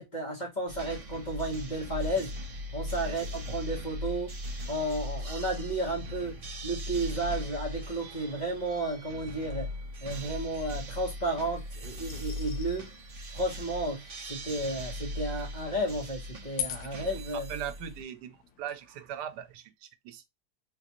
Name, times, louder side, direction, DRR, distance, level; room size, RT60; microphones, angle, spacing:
voice 1, 0.0-2.3 2.7-4.3 4.7-9.7 10.0-12.9 13.3-17.5, right 1 dB, 30° left, 1.1 m, -33 dB
sound 1, 0.7-18.0, left 1 dB, 40° right, 0.5 m, -39 dB
sound 2, 2.2-19.5, left 9 dB, 80° left, 1.4 m, -48 dB
voice 2, 17.3-20.3, right 9 dB, 85° right, 1.2 m, -40 dB
3.9 x 2.4 x 2.8 m
omnidirectional pair, 1.8 m